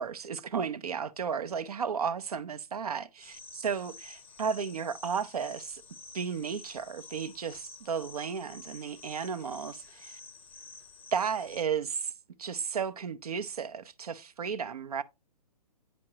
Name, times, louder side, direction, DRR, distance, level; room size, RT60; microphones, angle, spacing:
voice 1, 0.0-5.8 6.1-10.2 11.1-12.1 12.4-15.0, right 6 dB, 65° right, 0.6 m, -34 dB
sound 1, 3.2-11.6, left 3 dB, 10° left, 0.6 m, -50 dB
8.8 x 5.2 x 2.8 m
figure-of-eight pair, 130°, 20 cm